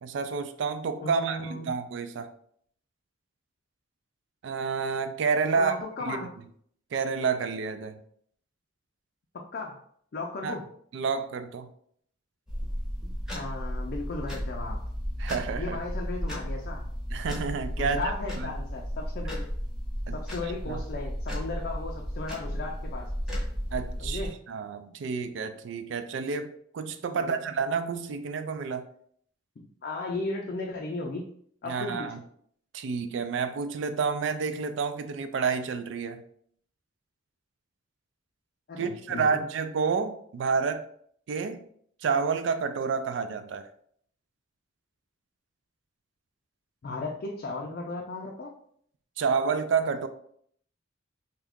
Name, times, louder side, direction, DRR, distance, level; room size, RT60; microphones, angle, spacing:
voice 1, 0.0-2.3 4.4-5.7 6.0-6.2 6.9-8.0 10.4-10.6 10.9-11.7 15.2-15.8 17.1-18.0 18.4-18.5 20.1-20.2 20.6-20.8 23.7-24.2 24.5-28.8 31.7-32.2 32.7-36.2 38.8-40.9 41.3-41.6 42.0-43.6 49.2-50.1, right 5 dB, 65° right, 10 dB, 0.3 m, -29 dB
voice 2, 1.0-1.7 5.5-6.3 9.3-9.8 10.1-10.6 13.3-14.8 15.5-16.9 17.8-19.5 20.1-23.4 24.0-24.4 27.1-27.4 29.6-31.3 31.6-32.1 38.7-39.5 46.8-48.5, left 3 dB, 50° left, 0 dB, 0.4 m, -36 dB
sound 1, 12.5-24.3, equal, 5° right, 0.8 m, -34 dB
2.7 x 2.4 x 3.5 m, 0.64 s
head